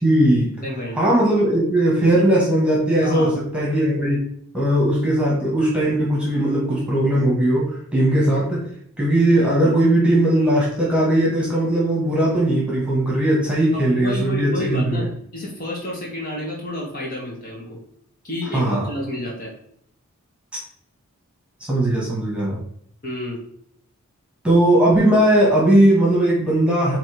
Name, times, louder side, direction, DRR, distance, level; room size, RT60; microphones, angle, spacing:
voice 1, 0.0-0.5 0.9-4.2 4.5-8.7 9.0-15.1 18.5-18.8 21.7-22.6 24.4-27.0, right 1 dB, 5° right, -5 dB, 1.7 m, -18 dB
voice 2, 0.6-1.0 3.0-3.3 13.7-17.8 18.2-19.5 23.0-23.4, equal, 40° left, -4 dB, 2.2 m, -30 dB
8.5 x 3.3 x 3.5 m, 0.66 s
head